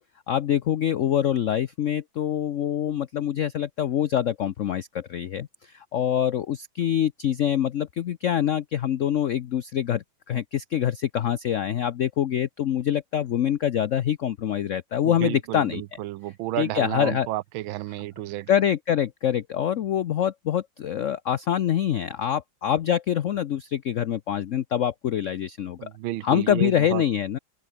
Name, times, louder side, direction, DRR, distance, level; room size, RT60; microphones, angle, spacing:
voice 1, 0.3-15.8 16.6-17.3 17.9-18.0 18.5-25.9 26.2-27.4, left 10 dB, 80° left, 0.6 m, -25 dB
voice 2, 15.0-18.5 25.8-27.0, right 16 dB, 80° right, 1.4 m, -31 dB
open air
omnidirectional pair, 2.2 m